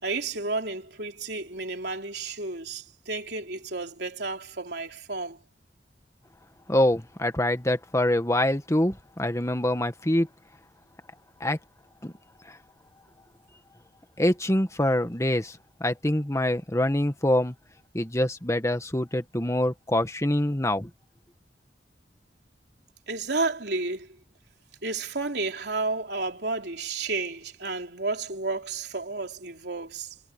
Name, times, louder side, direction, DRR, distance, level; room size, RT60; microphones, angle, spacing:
voice 1, 0.0-5.4 23.1-24.2 24.8-30.2, right 3 dB, 65° right, 3.9 m, -31 dB
voice 2, 6.7-10.3 11.4-11.6 12.0-12.1 12.5-12.6 14.2-17.5 17.9-20.9, left 1 dB, 15° left, 1.7 m, -25 dB
head